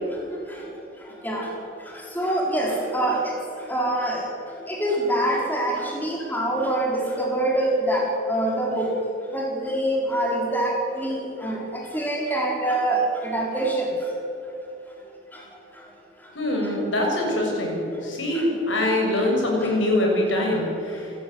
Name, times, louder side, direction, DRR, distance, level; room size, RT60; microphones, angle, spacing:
voice 1, 2.2-3.3 3.7-4.2 4.7-8.0 8.3-8.9 9.3-11.6 11.9-13.8, right 1 dB, 10° left, -2 dB, 4.4 m, -24 dB
voice 2, 16.4-21.1, left 1 dB, 75° left, 0 dB, 7.2 m, -23 dB
28.5 x 15.5 x 9.7 m, 2.7 s
head